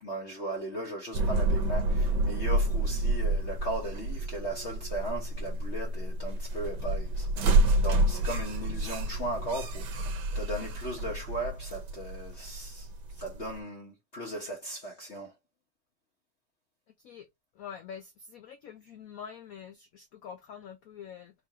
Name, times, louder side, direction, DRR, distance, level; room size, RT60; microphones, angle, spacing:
voice 1, 0.0-10.0 10.3-12.9 13.2-15.3, right 1 dB, 40° left, 1.2 m, -37 dB
sound 1, 1.1-13.6, right 2 dB, 80° right, 1.6 m, -29 dB
voice 2, 17.5-21.3, left 7 dB, 90° left, 0.7 m, -45 dB
3.8 x 2.7 x 4.6 m
omnidirectional pair, 2.2 m